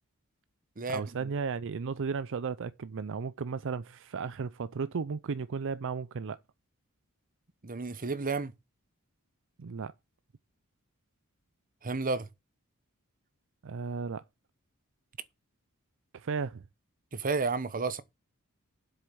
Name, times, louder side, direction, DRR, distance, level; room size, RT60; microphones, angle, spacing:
voice 1, 0.9-6.4 9.6-9.9 13.6-14.2 16.1-16.6, right 5 dB, 60° right, 0.5 m, -34 dB
voice 2, 7.6-8.5 11.8-12.3 17.1-18.0, right 4 dB, 40° right, 1.0 m, -31 dB
8.1 x 6.9 x 6.9 m
head